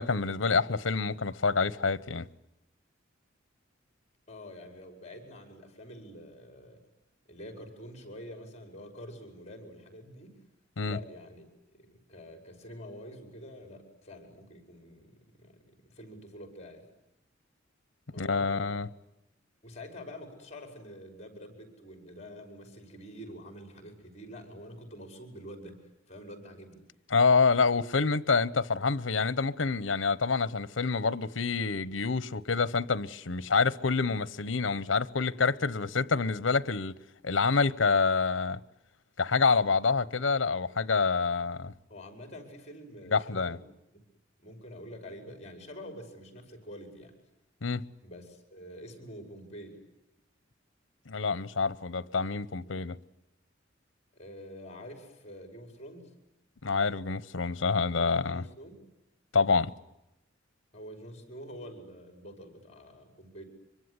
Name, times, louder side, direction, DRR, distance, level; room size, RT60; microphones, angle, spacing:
voice 1, 0.0-2.3 10.8-11.0 18.2-18.9 27.1-36.9 37.2-38.6 39.2-41.7 43.1-43.6 47.6-47.8 51.1-53.0 56.6-58.4 59.3-59.7, left 4 dB, 85° left, 0.9 m, -27 dB
voice 2, 4.3-6.8 7.3-10.4 10.8-11.5 11.8-16.9 18.1-18.8 19.6-25.8 26.1-26.8 41.9-43.7 43.9-44.0 44.4-47.1 48.0-49.8 54.1-56.1 58.0-58.9 60.7-63.4, equal, 35° left, 5.3 m, -47 dB
25.5 x 23.5 x 9.7 m
head